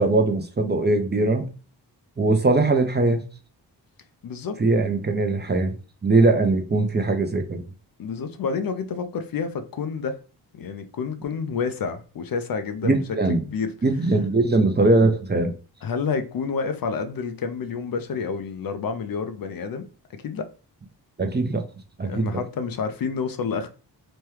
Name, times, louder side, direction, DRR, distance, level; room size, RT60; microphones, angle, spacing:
voice 1, 0.0-1.5 2.2-3.2 4.6-5.7 6.0-7.6 12.8-13.4 13.8-15.5 21.2-21.6 22.0-22.4, right 2 dB, 25° right, 0.6 m, -21 dB
voice 2, 4.2-4.6 8.0-10.2 10.5-13.0 13.3-13.7 15.8-19.9 20.2-20.5 22.1-23.7, left 5 dB, 50° left, 0.5 m, -29 dB
3.1 x 2.2 x 3.2 m
supercardioid pair, 50°, 44 cm